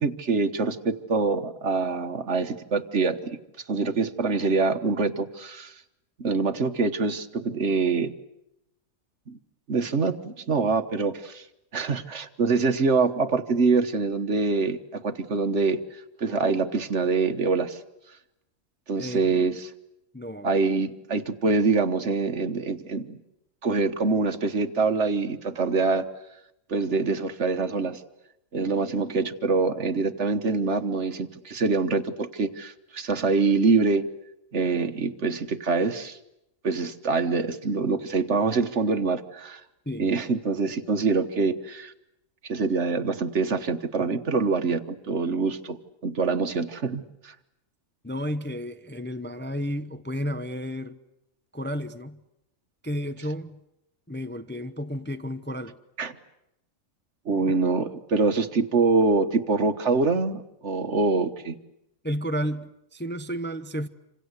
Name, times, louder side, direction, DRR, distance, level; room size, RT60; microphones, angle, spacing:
voice 1, 0.0-3.4 3.7-5.7 6.2-8.1 9.3-9.4 9.7-11.4 11.7-17.8 18.9-19.7 20.4-23.2 23.6-26.0 26.7-28.0 28.5-34.0 34.5-36.2 36.6-39.6 40.0-41.9 42.4-45.8 46.0-47.3 56.0-56.2 57.2-61.6, right 4 dB, 55° right, 1.5 m, -25 dB
voice 2, 19.0-19.4 20.1-20.5 39.9-40.1 48.0-51.0 51.5-52.2 52.8-53.6 54.1-55.8 62.0-63.9, equal, 10° left, 0.7 m, -32 dB
27.5 x 26.5 x 8.1 m
omnidirectional pair, 1.4 m